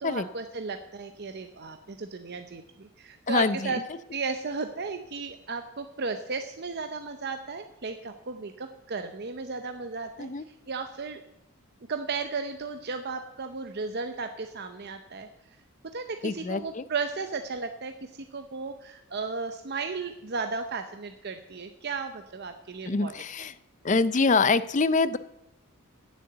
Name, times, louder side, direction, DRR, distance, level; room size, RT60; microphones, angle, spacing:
voice 1, 0.0-3.8 4.1-10.3 10.7-11.2 11.9-15.3 15.9-23.1, right 4 dB, 45° right, 7 dB, 0.7 m, -35 dB
voice 2, 3.3-3.7 10.2-10.5 16.2-16.9 22.9-23.5 23.8-25.2, left 4 dB, 35° left, 15 dB, 0.5 m, -25 dB
9.6 x 7.6 x 8.0 m, 0.84 s
head